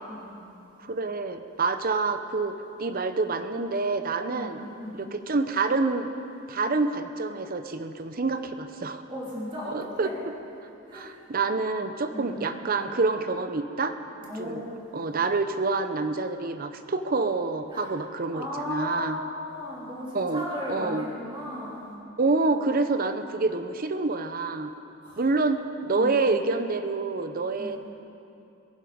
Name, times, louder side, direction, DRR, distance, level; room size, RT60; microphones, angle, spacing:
voice 1, 0.8-2.5 2.8-4.6 4.9-6.1 6.5-9.1 9.7-10.1 10.9-14.0 14.4-14.6 14.9-19.2 20.1-20.4 20.7-21.1 22.2-24.7 25.2-27.8, right 3 dB, 45° right, 9 dB, 0.8 m, -27 dB
voice 2, 4.3-5.0 9.1-10.1 10.9-11.1 12.1-12.4 14.2-14.7 17.7-17.9 18.3-21.9 25.0-25.2 26.0-26.2 27.6-27.8, left 1 dB, 25° right, -7 dB, 3.3 m, -36 dB
22.5 x 10.5 x 5.1 m, 2.8 s
head